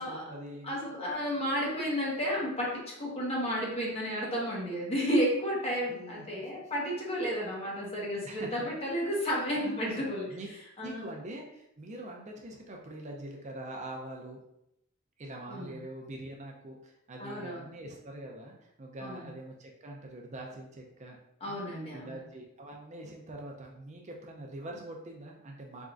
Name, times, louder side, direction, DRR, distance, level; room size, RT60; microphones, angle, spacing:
voice 1, 0.0-0.8 5.9-6.7 8.2-8.7 9.5-10.5 10.8-14.4 15.2-21.2 21.5-21.6 21.9-25.8, right 1 dB, 35° right, 0 dB, 0.5 m, -44 dB
voice 2, 0.6-10.3 10.8-11.0 15.5-15.8 17.2-17.6 19.0-19.3 21.4-22.1, equal, 30° left, -4 dB, 1.1 m, -32 dB
4.2 x 3.6 x 2.5 m, 0.80 s
head